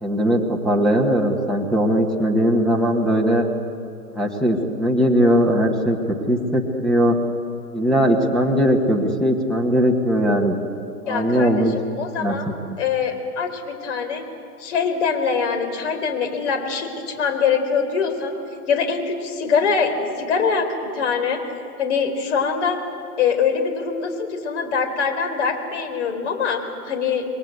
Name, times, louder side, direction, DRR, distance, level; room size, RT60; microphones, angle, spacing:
voice 1, 0.0-3.5 4.1-6.0 6.3-7.2 7.7-10.6 11.0-11.7 12.2-12.3 12.7-12.8, equal, ahead, 0 dB, 1.2 m, -19 dB
voice 2, 11.1-12.5 12.8-14.2 14.6-18.3 18.7-21.4 21.8-22.8 23.2-27.2, left 6 dB, 45° left, 6 dB, 4.2 m, -23 dB
28.0 x 22.0 x 8.1 m, 2.5 s
hypercardioid pair, 155°, 47 cm